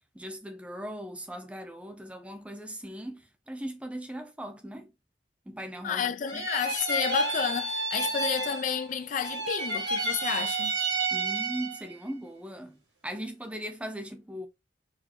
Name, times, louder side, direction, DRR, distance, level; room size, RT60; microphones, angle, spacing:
voice 1, 0.1-4.9 5.5-6.5 11.1-14.5, equal, 5° right, 0.6 m, -39 dB
voice 2, 5.8-10.7, left 7 dB, 40° left, 0.3 m, -31 dB
sound 1, 6.3-8.9 9.2-11.9, right 3 dB, 75° right, 2.2 m, -30 dB
4.7 x 2.6 x 3.2 m
head